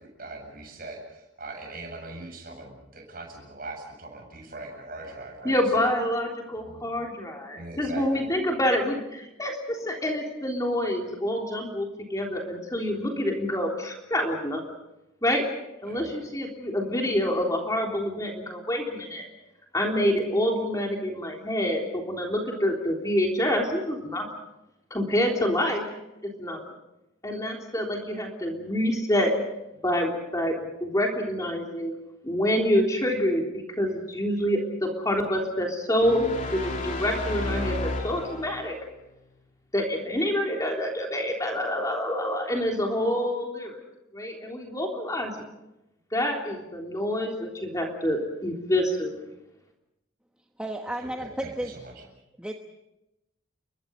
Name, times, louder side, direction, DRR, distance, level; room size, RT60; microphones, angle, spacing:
voice 1, 0.0-5.9 6.6-6.9 7.5-8.3 15.8-16.1 51.0-52.0, right 2 dB, 45° right, 2 dB, 7.8 m, -41 dB
voice 2, 5.4-14.6 15.2-15.4 15.8-19.3 19.7-24.2 24.9-25.9 26.4-26.6 27.2-29.3 29.8-31.9 32.2-33.4 33.8-38.7 39.7-43.8 44.1-45.3 46.1-49.1, left 1 dB, 15° left, 0 dB, 3.5 m, -27 dB
sound 1, 36.0-38.8, left 1 dB, 35° left, 3.0 m, -32 dB
voice 3, 50.6-51.7 52.4-52.5, right 1 dB, 5° right, 2 dB, 1.2 m, -32 dB
30.0 x 23.5 x 5.4 m, 0.91 s
head